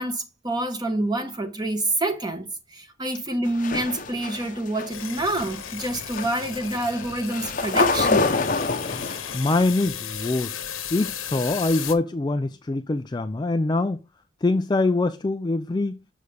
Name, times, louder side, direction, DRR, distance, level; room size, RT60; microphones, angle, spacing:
voice 1, 0.0-8.3, right 1 dB, 20° right, 1.1 m, -27 dB
sound 1, 3.5-9.4, left 3 dB, 40° left, 0.8 m, -27 dB
sound 2, 4.9-11.9, left 9 dB, 75° left, 1.1 m, -35 dB
voice 2, 9.3-10.6 10.9-14.0 14.4-16.0, left 2 dB, 20° left, 0.3 m, -24 dB
6.6 x 6.5 x 3.4 m
head